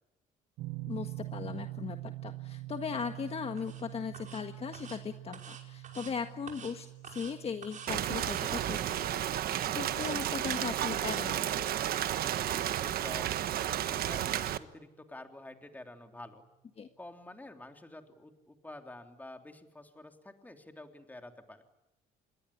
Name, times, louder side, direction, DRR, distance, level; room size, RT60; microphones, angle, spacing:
sound 1, 0.6-13.5, right 18 dB, 85° right, 1.5 m, -46 dB
voice 1, 0.9-9.2 9.4-11.6 16.8-16.9, left 6 dB, 35° left, 7 dB, 1.6 m, -38 dB
sound 2, 3.6-3.8 4.1-4.4 4.7-5.0 5.3-6.1 6.5-6.7 7.0-7.3 7.6-7.9 8.2-8.5 8.8-9.1 9.3-10.7 11.0-11.2, right 7 dB, 50° right, 5.8 m, -48 dB
Rain, 7.9-14.6, right 11 dB, 65° right, 1.4 m, -32 dB
voice 2, 12.2-16.4 17.0-21.6, left 1 dB, 10° left, 5 dB, 3.3 m, -49 dB
26.5 x 21.5 x 9.9 m, 0.93 s
cardioid pair, 110°, 17 cm